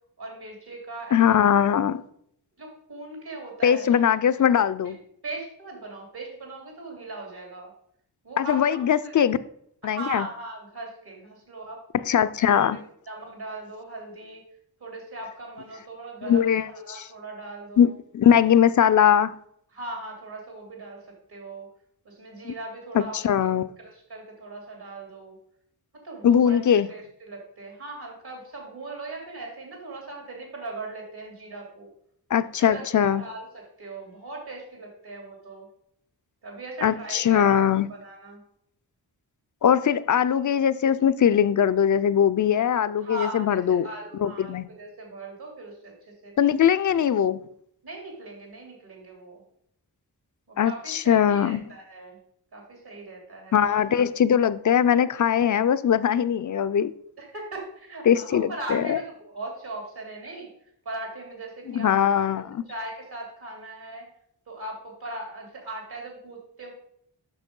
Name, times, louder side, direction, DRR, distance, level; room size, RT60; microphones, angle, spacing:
voice 1, 0.2-1.4 2.6-4.0 4.8-5.0 5.2-7.7 8.2-9.2 9.8-11.8 12.7-12.8 13.1-14.4 14.8-17.9 19.7-21.7 22.0-23.5 23.8-25.4 25.9-31.9 32.6-35.7 36.4-37.6 37.9-38.4 43.0-46.0 46.2-46.3 47.8-49.4 50.5-52.2 52.5-53.6 57.2-60.5 60.8-61.9 62.3-64.1 64.5-66.7, right 2 dB, 70° right, 3.2 m, -39 dB
voice 2, 1.1-2.0 3.6-5.0 8.4-9.4 9.8-10.3 12.1-12.8 16.2-17.0 17.8-19.3 22.4-22.5 22.9-23.7 26.2-26.9 32.3-33.2 36.8-37.9 39.6-43.8 44.2-44.7 46.4-47.4 50.6-51.6 53.5-56.9 58.1-59.0 61.7-62.6, left 9 dB, 50° left, 0.5 m, -21 dB
6.1 x 6.1 x 5.3 m
wide cardioid pair, 85°, 40 cm